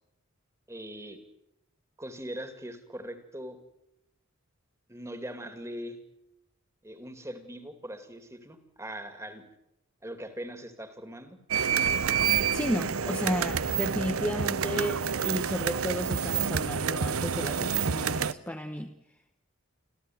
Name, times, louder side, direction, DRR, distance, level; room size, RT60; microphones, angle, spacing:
voice 1, 0.7-1.2 2.0-3.6 4.9-6.0 6.8-9.4 10.0-11.4, equal, 15° right, 8 dB, 2.4 m, -41 dB
sound 1, 11.5-18.3, right 7 dB, 80° right, 0.8 m, -28 dB
voice 2, 12.5-18.9, equal, 10° left, 4 dB, 1.0 m, -33 dB
26.5 x 15.0 x 9.3 m, 0.88 s
head